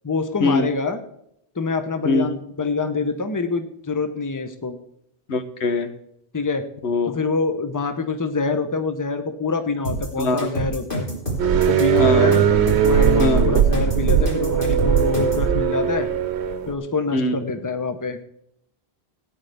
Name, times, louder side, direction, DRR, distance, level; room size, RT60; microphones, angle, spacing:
voice 1, 0.0-1.0 1.6-4.8 6.3-6.6 7.0-11.1 11.5-12.4 12.8-16.1 16.7-18.2, left 4 dB, 20° left, 8 dB, 0.8 m, -25 dB
voice 2, 5.3-5.9 6.8-7.1 10.2-10.5 12.0-12.3 13.2-13.5 17.1-17.4, left 3 dB, 90° left, 9 dB, 1.2 m, -22 dB
sound 1, 9.8-15.5, right 1 dB, 50° left, 4.0 m, -27 dB
sound 2, 11.4-16.7, right 7 dB, 85° right, 1.0 m, -19 dB
17.0 x 9.6 x 3.4 m, 0.76 s
omnidirectional pair, 1.1 m